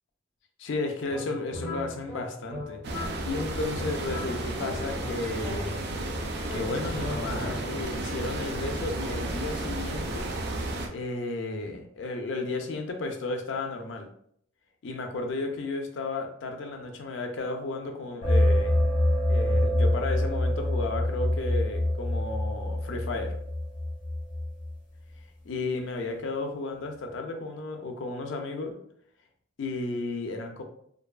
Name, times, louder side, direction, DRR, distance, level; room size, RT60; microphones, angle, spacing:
voice 1, 0.6-5.8 6.5-10.3 10.9-14.1 14.8-23.4 25.4-28.7 29.6-30.6, left 3 dB, 70° left, 4 dB, 0.4 m, -33 dB
sound 1, 1.1-6.0 6.5-8.0, left 1 dB, 5° right, 1.1 m, -38 dB
sound 2, 2.8-10.9, right 2 dB, 60° right, 0.4 m, -33 dB
sound 3, 18.2-24.7, left 1 dB, 45° left, 0.9 m, -25 dB
2.5 x 2.3 x 2.3 m, 0.67 s
head